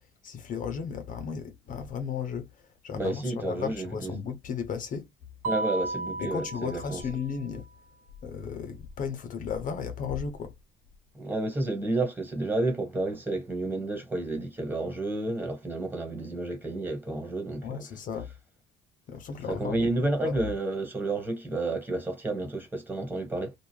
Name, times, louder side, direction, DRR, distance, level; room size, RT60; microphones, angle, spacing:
voice 1, 0.2-5.1 6.2-7.7 8.2-10.5 17.6-18.3 19.1-19.9 20.2-20.5, left 6 dB, 50° left, 0.6 m, -35 dB
voice 2, 3.0-4.1 5.4-7.0 11.1-17.8 19.5-23.5, right 2 dB, 10° right, 1.3 m, -31 dB
Mallet percussion, 5.4-7.5, right 2 dB, 50° right, 0.6 m, -34 dB
2.5 x 2.3 x 3.1 m
cardioid pair, 110°, 17 cm